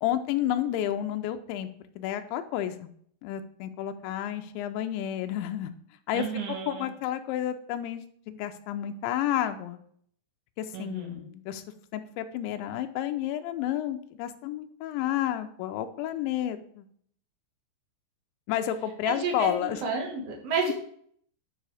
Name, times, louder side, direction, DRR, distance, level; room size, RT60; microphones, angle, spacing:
voice 1, 0.0-1.7 2.0-2.9 3.2-5.7 6.1-9.8 10.6-11.6 11.9-16.9 18.5-19.8, left 11 dB, 80° left, 8 dB, 2.9 m, -31 dB
voice 2, 6.1-6.9 10.7-11.2 19.0-20.7, right 4 dB, 70° right, 0 dB, 1.4 m, -31 dB
10.0 x 5.1 x 4.9 m, 0.62 s
omnidirectional pair, 5.6 m